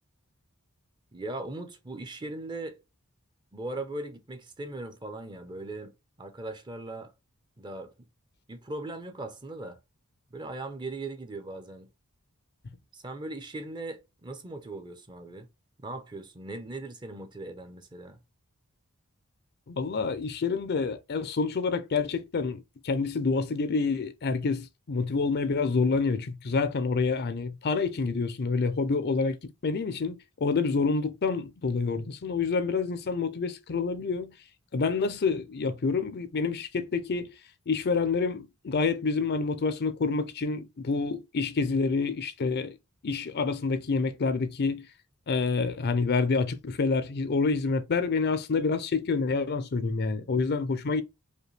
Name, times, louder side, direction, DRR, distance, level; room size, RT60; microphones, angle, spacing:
voice 1, 1.1-2.8 3.5-5.9 6.2-7.1 7.6-7.9 8.5-9.8 10.3-11.9 12.9-15.5 15.8-18.2, right 2 dB, 20° right, 0.7 m, -39 dB
voice 2, 19.7-34.3 34.7-37.3 37.7-42.8 43.0-44.9 45.3-51.0, left 4 dB, 50° left, 0.5 m, -28 dB
5.2 x 2.3 x 3.2 m
head